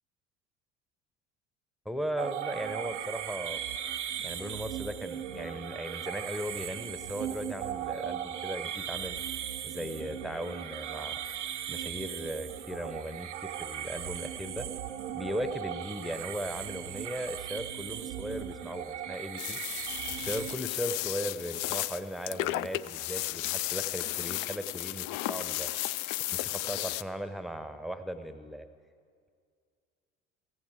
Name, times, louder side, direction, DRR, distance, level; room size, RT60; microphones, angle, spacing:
voice 1, 1.8-3.6 4.2-9.2 9.6-11.2 11.7-14.7 15.1-19.6 20.1-25.7 26.3-28.6, equal, ahead, 10 dB, 0.8 m, -37 dB
sound 1, 2.2-20.6, right 10 dB, 75° right, 0.8 m, -38 dB
sound 2, 19.4-27.0, left 16 dB, 45° left, 0.4 m, -34 dB
15.5 x 15.5 x 4.8 m, 2.1 s
figure-of-eight pair, 65°, 35 cm